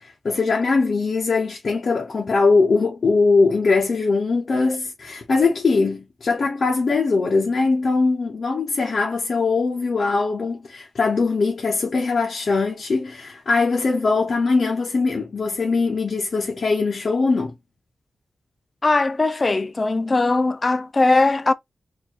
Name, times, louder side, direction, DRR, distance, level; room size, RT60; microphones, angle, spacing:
voice 1, 0.0-17.5, left 4 dB, 55° left, 1.0 m, -21 dB
voice 2, 18.8-21.5, left 3 dB, 35° left, 0.4 m, -19 dB
4.3 x 2.7 x 2.9 m
wide cardioid pair, 85°, 0 cm